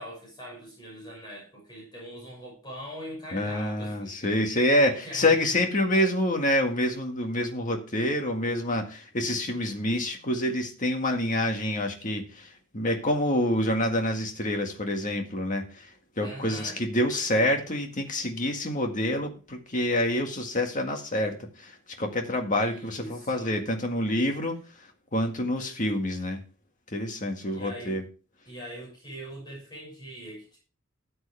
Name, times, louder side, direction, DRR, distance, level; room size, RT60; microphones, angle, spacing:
voice 1, 0.0-5.6 16.2-16.8 22.5-23.5 27.5-28.0 28.4-30.6, equal, 20° left, -3 dB, 6.0 m, -42 dB
voice 2, 3.3-24.6 25.1-26.4 26.9-28.0, left 1 dB, 40° left, 4 dB, 1.9 m, -27 dB
13.0 x 7.9 x 3.4 m, 0.35 s
head